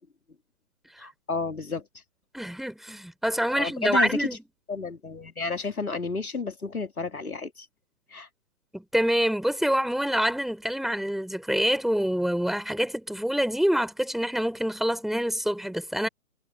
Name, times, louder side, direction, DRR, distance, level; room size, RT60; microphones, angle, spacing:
voice 1, 1.0-1.9 3.6-4.3 4.7-7.7 8.1-8.3, left 3 dB, 85° left, 3.3 m, -31 dB
voice 2, 2.3-4.4 8.7-16.1, equal, ahead, 6.0 m, -26 dB
figure-of-eight pair, 140°, 42 cm